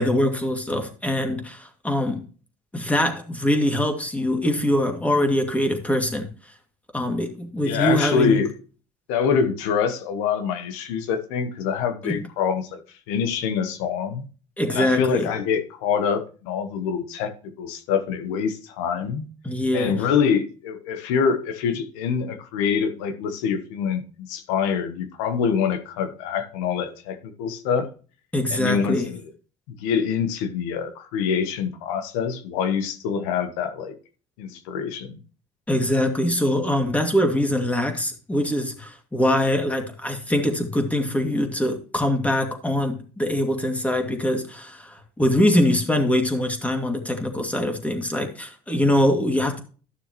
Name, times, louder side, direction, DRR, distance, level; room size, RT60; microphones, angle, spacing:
voice 1, 0.0-2.2 2.7-6.3 6.9-8.4 12.0-12.2 14.6-15.3 19.4-20.0 28.3-29.1 35.7-49.6, left 1 dB, 10° left, 2.3 m, -23 dB
voice 2, 7.6-8.5 9.1-12.8 13.1-14.3 14.7-19.3 19.7-27.9 28.5-29.3 29.7-33.9 34.4-35.2, left 6 dB, 85° left, 1.2 m, -25 dB
12.5 x 6.6 x 3.1 m
supercardioid pair, 80°, 16 cm